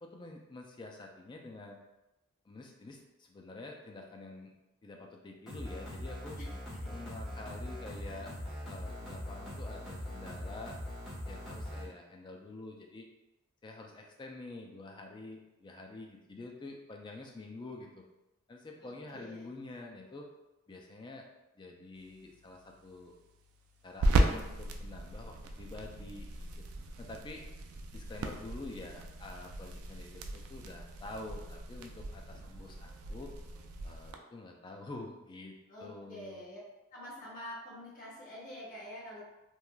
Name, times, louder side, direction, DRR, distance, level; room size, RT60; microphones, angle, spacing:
voice 1, 0.0-1.8 2.4-4.5 4.8-6.4 6.9-8.3 8.7-10.7 11.3-13.1 13.6-18.0 18.5-20.3 20.7-21.2 21.6-23.2 23.8-26.7 27.0-27.4 27.9-33.3 33.8-36.4, left 2 dB, 20° left, 1 dB, 0.3 m, -47 dB
sound 1, 5.5-11.8, left 1 dB, ahead, 0.9 m, -41 dB
voice 2, 6.4-7.0 18.8-19.5 35.7-36.6 36.9-39.2, left 1 dB, 40° left, -6 dB, 0.8 m, -47 dB
sound 2, 22.0-34.1, right 2 dB, 75° right, 0.3 m, -36 dB
3.1 x 2.4 x 2.2 m, 0.97 s
head